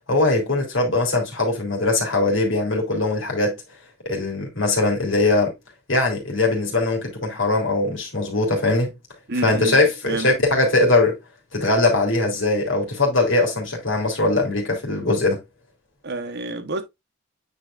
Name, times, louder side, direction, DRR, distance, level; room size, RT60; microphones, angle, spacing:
voice 1, 0.1-3.6 4.0-5.5 5.9-8.9 9.4-11.2 11.5-15.4, left 2 dB, 65° left, 3.3 m, -21 dB
voice 2, 9.3-10.3 16.0-16.8, right 2 dB, 55° right, 1.2 m, -29 dB
9.5 x 4.7 x 2.5 m
head